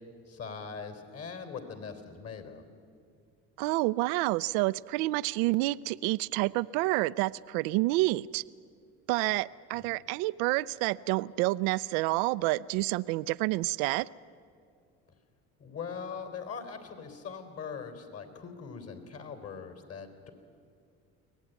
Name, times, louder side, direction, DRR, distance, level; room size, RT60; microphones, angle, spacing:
voice 1, 0.3-2.6 9.8-10.0 15.6-20.3, left 6 dB, 45° left, 7 dB, 3.7 m, -41 dB
voice 2, 3.6-8.4 9.1-14.1, right 20 dB, 85° right, 17 dB, 0.5 m, -28 dB
24.0 x 18.0 x 9.3 m, 2.4 s
supercardioid pair, 90°, 33 cm